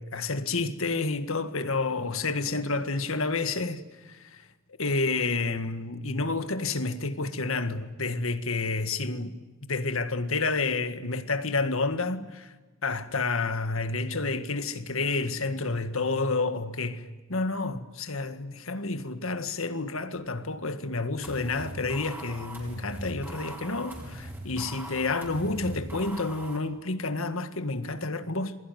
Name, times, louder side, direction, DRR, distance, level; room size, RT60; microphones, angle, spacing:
voice 1, 0.0-4.4 4.8-9.4 9.6-12.5 12.8-17.0 17.3-28.6, left 3 dB, 75° left, 1.8 m, -29 dB
sound 1, 21.2-26.6, right 1 dB, 10° right, 5.6 m, -40 dB
27.5 x 21.5 x 9.3 m
head